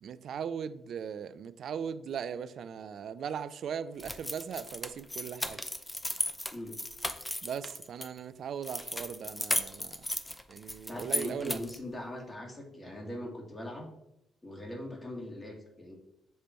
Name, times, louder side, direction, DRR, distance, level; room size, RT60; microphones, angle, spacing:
voice 1, 0.0-5.6 7.4-10.1 10.5-11.6, right 7 dB, 65° right, 0.4 m, -39 dB
sound 1, 4.0-8.1 8.6-11.8, left 1 dB, 10° left, 0.6 m, -35 dB
voice 2, 10.9-13.9 14.4-15.9, left 1 dB, 30° left, 1.9 m, -41 dB
6.6 x 3.4 x 4.3 m
hypercardioid pair, 50°, 0 cm